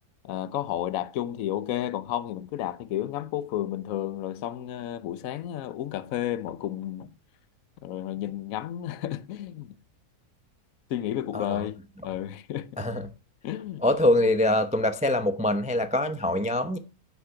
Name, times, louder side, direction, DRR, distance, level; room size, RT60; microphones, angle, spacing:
voice 1, 0.2-7.1 7.8-9.7 10.9-11.8 12.0-12.9 13.4-13.8, left 12 dB, 65° left, 1.1 m, -32 dB
voice 2, 12.8-13.1 13.8-16.8, left 1 dB, 10° right, 0.3 m, -24 dB
9.8 x 5.9 x 5.8 m
omnidirectional pair, 1.7 m